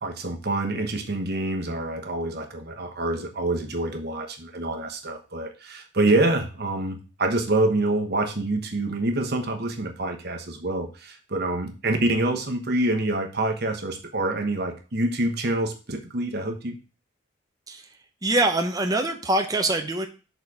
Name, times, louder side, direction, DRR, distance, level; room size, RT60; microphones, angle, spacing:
voice 1, 0.0-16.8, right 2 dB, 55° right, 5 dB, 1.1 m, -26 dB
voice 2, 18.2-20.1, right 2 dB, 20° right, 5 dB, 0.7 m, -24 dB
6.6 x 4.1 x 4.8 m, 0.34 s
head